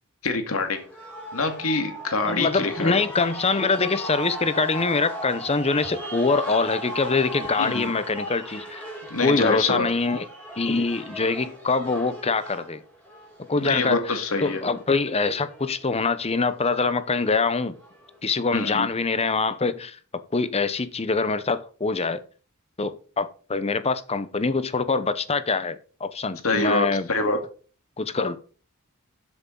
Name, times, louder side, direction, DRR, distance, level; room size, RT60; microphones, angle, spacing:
voice 1, 0.2-0.8 1.3-3.0 7.5-8.0 9.1-9.9 13.6-14.6 18.5-18.9 26.4-27.4, left 3 dB, 70° left, 2.2 m, -25 dB
sound 1, 0.6-18.2, right 1 dB, 5° left, 5.6 m, -38 dB
voice 2, 2.2-8.9 9.2-10.3 10.6-12.8 13.5-17.8 18.2-20.0 20.3-22.2 22.8-27.1 28.0-28.4, left 4 dB, 30° left, 0.8 m, -24 dB
13.5 x 7.7 x 3.9 m
head